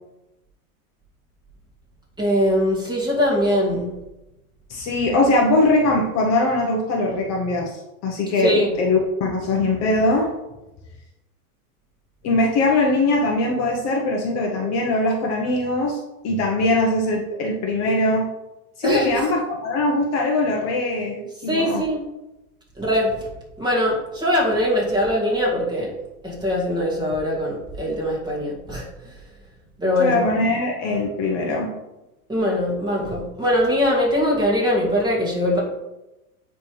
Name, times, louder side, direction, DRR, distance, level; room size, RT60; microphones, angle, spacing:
voice 1, 2.2-3.9 8.4-8.7 18.8-19.2 21.5-22.0 22.8-23.1 23.6-25.9 26.2-28.9 29.8-30.2 32.3-35.6, left 1 dB, 10° right, -5 dB, 2.0 m, -21 dB
voice 2, 4.7-10.3 12.2-18.3 18.8-21.8 30.0-31.7, left 2 dB, 35° left, -1 dB, 1.0 m, -21 dB
9.6 x 3.4 x 3.2 m, 0.97 s
hypercardioid pair, 120°, 45 cm